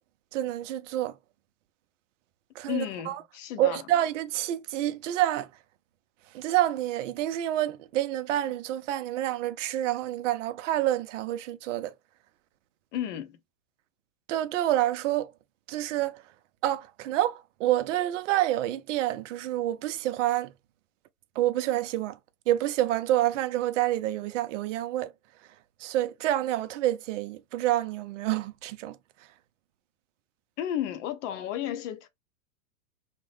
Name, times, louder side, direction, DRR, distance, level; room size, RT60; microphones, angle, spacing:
voice 1, 0.3-1.2 2.6-3.2 3.6-5.5 6.3-11.9 14.3-15.3 15.7-16.2 16.6-20.5 21.4-22.2 22.5-25.1 25.8-29.0, right 13 dB, 55° right, 0.5 m, -28 dB
voice 2, 2.7-3.8 12.9-13.4 30.6-32.1, left 10 dB, 55° left, 0.8 m, -33 dB
2.9 x 2.1 x 3.2 m
hypercardioid pair, 125°, 45 cm